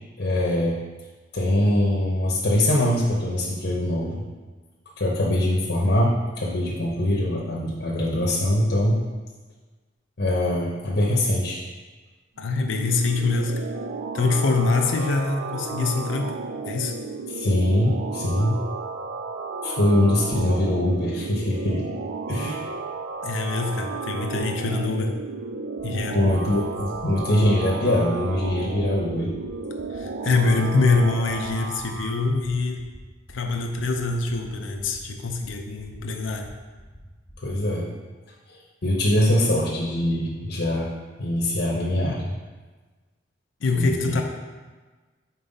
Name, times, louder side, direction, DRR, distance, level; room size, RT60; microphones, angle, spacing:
voice 1, 0.2-0.8 1.3-4.2 5.0-9.0 10.2-11.6 17.3-18.6 19.6-21.9 22.3-22.6 26.1-29.3 37.4-37.9 38.8-40.9 41.2-42.4 43.7-44.1, left 1 dB, 65° left, -3 dB, 0.9 m, -23 dB
voice 2, 12.4-13.6 14.1-16.3 16.6-16.9 23.2-25.2 25.8-26.2 29.9-32.8 33.3-36.5 43.6-44.2, left 3 dB, 85° left, 3 dB, 0.6 m, -24 dB
sound 1, 12.4-32.3, right 4 dB, 80° right, 0.4 m, -33 dB
sound 2, 25.8-26.0 26.3-26.5 26.8-27.0 27.3-27.5 27.8-28.0 28.3-28.5 28.8-29.0 29.3-29.5 29.8-30.0 30.3-30.5 30.8-31.0 31.3-31.5 31.8-32.0 32.3-32.5 32.8-33.0 33.3-33.5 33.8-34.0 34.3-34.5 34.8-35.0 35.3-35.5 35.8-36.0 36.3-36.5 36.8-37.0 37.3-37.5, equal, 10° right, 1.2 m, -47 dB
5.4 x 4.4 x 4.0 m, 1.3 s
head